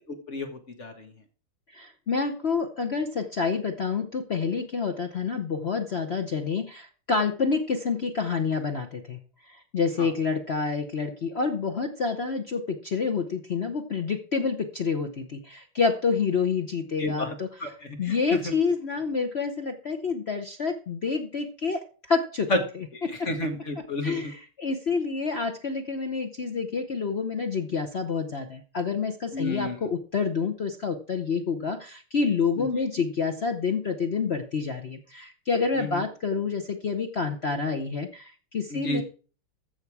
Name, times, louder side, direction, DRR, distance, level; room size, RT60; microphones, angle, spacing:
voice 1, 0.3-1.1 10.0-10.1 17.0-17.3 17.6-18.5 22.5-22.6 23.2-24.3 29.3-29.8 32.6-32.7 35.7-36.0 38.7-39.0, left 2 dB, 40° left, 5 dB, 1.4 m, -31 dB
voice 2, 1.7-17.7 18.0-22.5 22.7-23.3 24.0-39.0, left 5 dB, 80° left, 5 dB, 0.5 m, -28 dB
14.0 x 6.9 x 4.7 m, 0.39 s
omnidirectional pair, 2.4 m